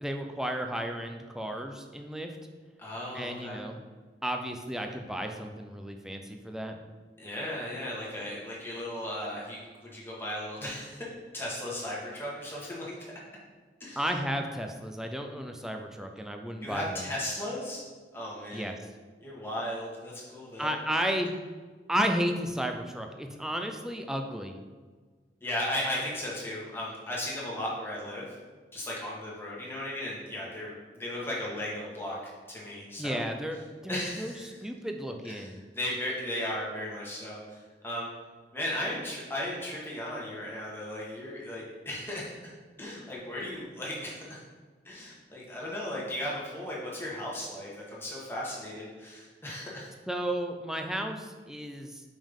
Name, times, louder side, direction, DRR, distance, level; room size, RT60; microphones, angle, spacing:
voice 1, 0.0-2.4 3.1-3.8 4.2-6.8 14.0-17.1 18.5-18.7 20.6-21.3 21.9-24.6 33.0-34.3 34.6-35.6 50.1-52.0, equal, 5° right, 4 dB, 0.4 m, -33 dB
voice 2, 2.8-3.6 7.2-11.0 11.3-12.9 13.8-14.1 16.6-17.8 18.1-18.7 19.2-20.7 25.4-28.4 28.7-32.2 32.5-33.2 33.9-34.6 35.3-38.1 38.5-42.5 42.8-44.4 44.8-49.9, left 1 dB, 15° left, -5 dB, 1.4 m, -36 dB
5.3 x 5.2 x 3.6 m, 1.4 s
head